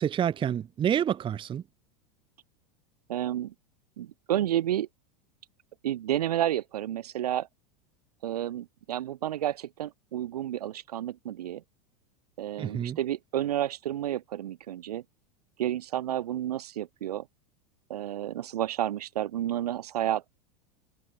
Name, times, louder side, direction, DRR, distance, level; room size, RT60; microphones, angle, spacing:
voice 1, 0.0-1.6 12.6-13.0, right 9 dB, 25° right, 0.9 m, -28 dB
voice 2, 3.1-3.5 4.0-4.9 5.8-7.5 8.2-11.6 12.4-15.0 15.6-17.3 17.9-20.3, right 12 dB, 85° right, 5.8 m, -31 dB
hypercardioid pair, 110°, 19 cm